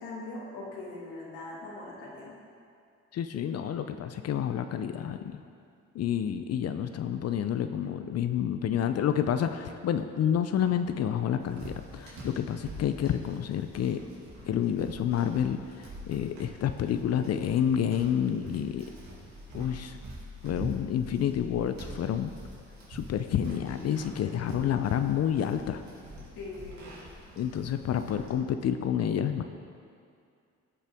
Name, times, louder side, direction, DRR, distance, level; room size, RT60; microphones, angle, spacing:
voice 1, 0.0-2.3 24.2-24.7 26.4-27.0, left 2 dB, 90° left, -5 dB, 2.3 m, -41 dB
voice 2, 3.1-5.4 5.9-14.0 14.5-18.8 19.5-20.0 20.4-22.3 22.9-25.8 27.4-29.4, left 9 dB, 55° left, 8 dB, 0.5 m, -29 dB
sound 1, 11.4-28.3, right 1 dB, 70° right, 2.4 m, -45 dB
16.0 x 5.6 x 3.6 m, 2.4 s
cardioid pair, 90°, 30 cm